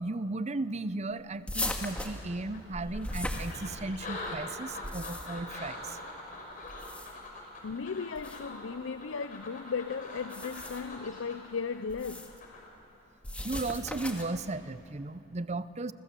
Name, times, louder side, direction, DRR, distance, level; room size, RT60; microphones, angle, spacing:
voice 1, 0.0-6.0 13.4-15.9, right 2 dB, 35° right, 0.7 m, -35 dB
sound 1, 1.5-4.1 4.7-5.5 6.6-7.3 8.2-8.4 10.2-11.0 11.9-12.4 13.2-14.4, left 1 dB, 5° left, 2.0 m, -38 dB
sound 2, 2.5-12.7, left 2 dB, 45° left, 5.2 m, -44 dB
voice 2, 7.6-12.4, left 5 dB, 80° left, 0.6 m, -36 dB
29.5 x 25.5 x 7.6 m
head